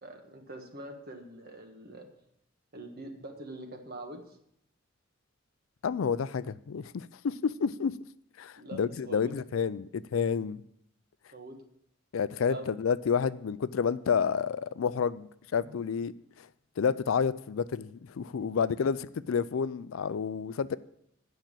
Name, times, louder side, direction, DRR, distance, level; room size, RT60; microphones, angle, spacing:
voice 1, 0.0-2.1 2.7-4.4 8.6-9.3 11.3-11.6 12.5-12.7 15.6-15.8, right 1 dB, 50° right, 1.5 m, -44 dB
voice 2, 5.8-7.9 8.4-10.6 12.1-16.1 16.4-16.5 16.8-20.8, left 6 dB, 80° left, 0.4 m, -30 dB
9.1 x 5.9 x 7.4 m
head